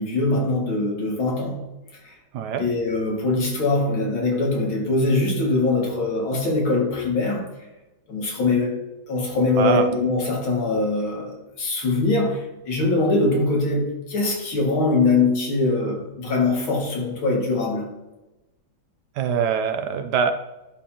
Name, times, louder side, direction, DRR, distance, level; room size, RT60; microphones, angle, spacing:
voice 1, 0.0-1.6 2.0-2.1 2.6-7.4 8.1-8.8 9.1-11.3 11.6-17.9, left 3 dB, 70° left, -1 dB, 2.7 m, -22 dB
voice 2, 2.3-2.7 9.6-9.9 19.2-20.3, right 7 dB, 75° right, 8 dB, 0.9 m, -23 dB
11.0 x 5.2 x 2.8 m, 1.0 s
omnidirectional pair, 2.3 m